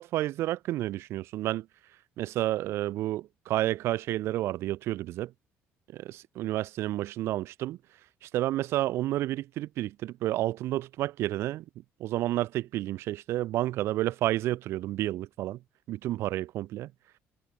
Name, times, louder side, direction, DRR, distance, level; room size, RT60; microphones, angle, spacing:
voice 1, 0.0-1.7 2.2-5.3 5.9-7.8 8.2-11.6 12.0-15.6 15.9-16.9, right 15 dB, 65° right, 0.4 m, -30 dB
cardioid pair, 150°, 5 cm